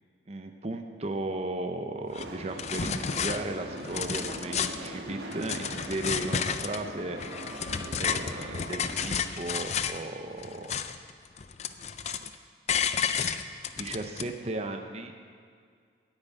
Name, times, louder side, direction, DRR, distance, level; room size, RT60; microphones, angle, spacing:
voice 1, 0.3-7.2 8.0-10.7 13.8-15.1, right 2 dB, 35° right, 5 dB, 0.7 m, -35 dB
sound 1, 2.1-2.2 2.6-3.4 3.8-4.9 5.3-6.8 7.2-10.0 10.4-11.1 11.4-12.3 12.7-14.2, left 7 dB, 35° left, 0.4 m, -31 dB
sound 2, 2.2-9.1, right 1 dB, 60° right, 1.4 m, -41 dB
sound 3, 4.1-9.0, left 1 dB, 80° left, 1.2 m, -50 dB
10.0 x 9.0 x 8.3 m, 2.1 s
head